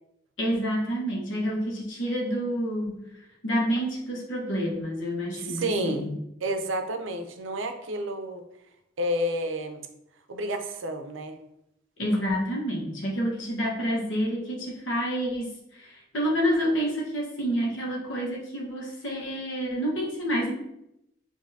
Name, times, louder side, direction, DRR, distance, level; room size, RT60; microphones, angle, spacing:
voice 1, 0.4-3.0 3.4-6.2 12.0-20.5, equal, 80° left, -2 dB, 1.1 m, -28 dB
voice 2, 5.3-6.0 6.4-8.4 9.0-9.9 10.3-11.4, equal, 90° right, 7 dB, 0.6 m, -30 dB
6.3 x 2.7 x 2.7 m, 0.82 s
head